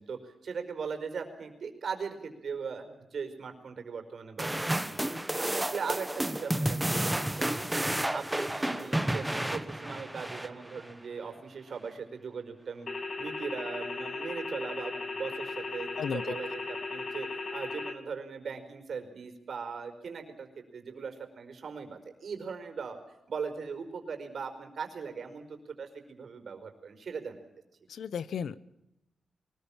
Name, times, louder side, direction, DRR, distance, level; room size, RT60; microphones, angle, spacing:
voice 1, 0.0-5.1 5.4-7.8 8.1-12.9 13.2-23.0 23.3-27.4, right 5 dB, 55° right, 6 dB, 5.0 m, -39 dB
sound 1, 4.4-10.9, right 1 dB, 5° right, 1.2 m, -31 dB
sound 2, 12.9-17.9, left 3 dB, 35° left, 2.6 m, -37 dB
voice 2, 16.0-16.3 27.9-28.6, left 7 dB, 80° left, 18 dB, 1.0 m, -34 dB
24.0 x 20.5 x 7.3 m, 0.87 s
wide cardioid pair, 135°, 0 cm